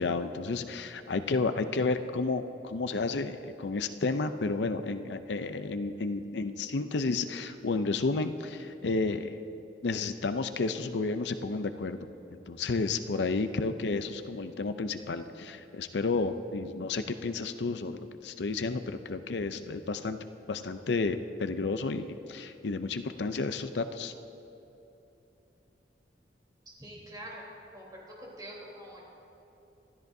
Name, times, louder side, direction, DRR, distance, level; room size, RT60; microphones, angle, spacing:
voice 1, 0.0-9.4 9.8-12.1 12.5-20.2 20.5-24.1, left 3 dB, 75° left, 10 dB, 0.6 m, -31 dB
voice 2, 26.8-27.5 27.7-29.0, right 1 dB, 25° right, -4 dB, 3.6 m, -45 dB
27.0 x 13.0 x 2.7 m, 2.9 s
head